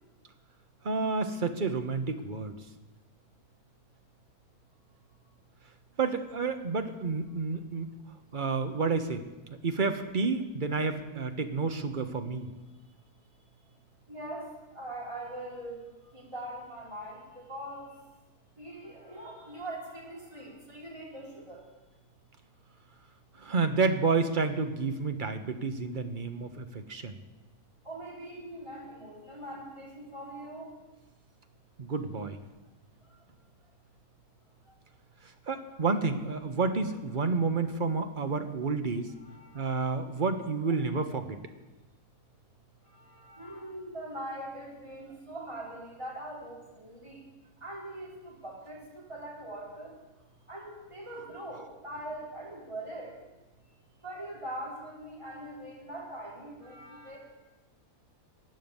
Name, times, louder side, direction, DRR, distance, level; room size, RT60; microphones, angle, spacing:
voice 1, 0.8-2.6 6.0-7.9 8.3-9.3 9.6-12.5 23.4-27.1 31.8-32.4 35.5-39.1 39.5-41.4, right 4 dB, 40° right, 7 dB, 1.0 m, -30 dB
voice 2, 14.1-15.8 16.1-17.9 18.6-21.6 27.8-30.7 39.2-39.8 42.9-47.2 47.6-50.0 50.5-53.1 54.0-57.2, right 1 dB, 20° right, -4 dB, 3.9 m, -42 dB
15.5 x 9.4 x 7.1 m, 1.1 s
omnidirectional pair, 1.6 m